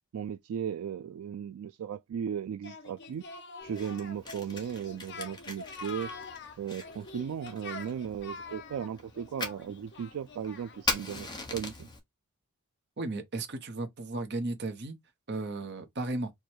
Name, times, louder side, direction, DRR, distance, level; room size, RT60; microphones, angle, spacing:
voice 1, 0.1-3.2 3.6-6.1 6.6-11.9, right 8 dB, 75° right, 0.3 m, -36 dB
Singing, 2.6-11.0, left 3 dB, 50° left, 0.8 m, -45 dB
Fire, 3.6-12.0, left 3 dB, 20° left, 1.0 m, -41 dB
voice 2, 13.0-14.9 15.3-16.3, right 2 dB, 50° right, 0.9 m, -35 dB
4.7 x 2.3 x 4.4 m
head